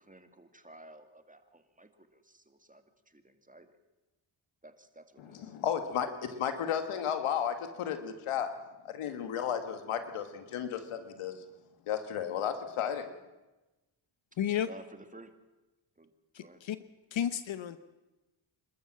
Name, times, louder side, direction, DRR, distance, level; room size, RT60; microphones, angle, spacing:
voice 1, 0.0-2.8 3.2-3.7 4.6-5.4 14.7-14.8 15.1-15.3 16.0-16.1 16.4-16.6, right 2 dB, 15° right, 7 dB, 2.2 m, -54 dB
voice 2, 5.2-8.5 8.8-11.4 11.9-13.1, left 8 dB, 90° left, 8 dB, 1.8 m, -33 dB
voice 3, 14.4-14.7 16.3-16.8 17.1-17.8, left 10 dB, 65° left, 12 dB, 1.0 m, -32 dB
27.5 x 13.0 x 7.5 m, 1.1 s
cardioid pair, 60°, 49 cm